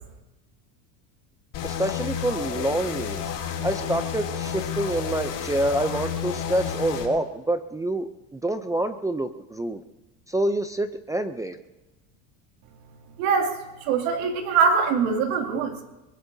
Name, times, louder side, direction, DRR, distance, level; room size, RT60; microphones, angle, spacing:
sound 1, 1.5-7.1, left 8 dB, 50° left, 3.5 m, -31 dB
voice 1, 1.6-3.3 3.6-9.8 10.3-11.6, right 1 dB, 10° right, 9 dB, 0.4 m, -27 dB
voice 2, 13.2-15.8, right 5 dB, 85° right, 3 dB, 2.7 m, -23 dB
23.0 x 20.0 x 2.7 m, 1.0 s
cardioid pair, 135°, 40 cm